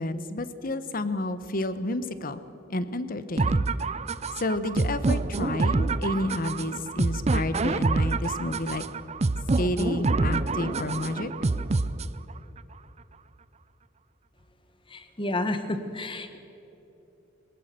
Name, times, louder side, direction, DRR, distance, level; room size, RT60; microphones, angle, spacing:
voice 1, 0.0-2.4 2.7-3.6 4.4-8.8 9.6-11.3, left 2 dB, 45° left, 12 dB, 1.1 m, -30 dB
sound 1, 3.4-12.4, right 3 dB, 35° right, 0.6 m, -26 dB
voice 2, 14.9-16.4, left 2 dB, 25° left, 9 dB, 1.3 m, -30 dB
22.0 x 19.5 x 6.8 m, 3.0 s
head